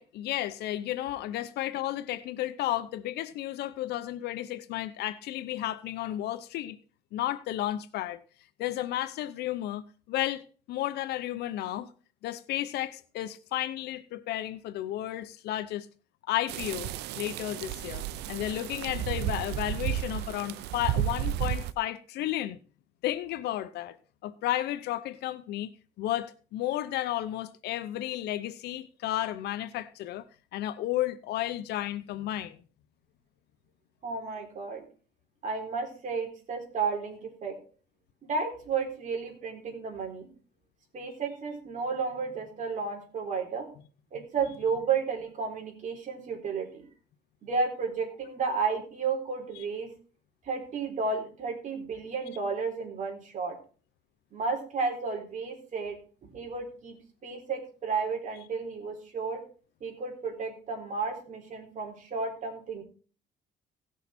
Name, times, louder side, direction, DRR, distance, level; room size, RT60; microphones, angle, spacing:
voice 1, 0.0-6.8 7.1-8.2 8.6-11.9 12.2-15.9 16.3-16.9 17.2-22.6 23.0-24.0 24.2-25.7 26.0-30.3 30.5-32.6, left 14 dB, 80° left, 0.8 m, -33 dB
sound 1, 16.5-21.7, right 12 dB, 80° right, 0.6 m, -32 dB
voice 2, 34.0-34.9 35.4-37.6 38.2-40.3 40.9-43.7 44.1-46.9 47.4-49.9 50.4-53.6 54.3-57.0 57.2-59.4 59.8-62.8, right 5 dB, 50° right, 3.9 m, -32 dB
17.5 x 6.5 x 4.3 m
cardioid pair, 110°, 17 cm